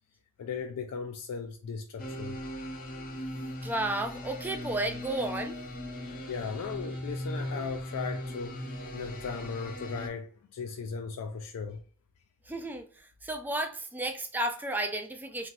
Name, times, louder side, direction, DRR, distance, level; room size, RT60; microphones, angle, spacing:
voice 1, 0.4-2.4 6.3-11.8, left 5 dB, 85° left, 0.4 m, -37 dB
sound 1, 2.0-10.1, left 1 dB, 40° left, 0.6 m, -38 dB
voice 2, 3.6-5.6 12.5-15.5, right 1 dB, 10° right, 0.3 m, -33 dB
2.9 x 2.7 x 2.6 m
head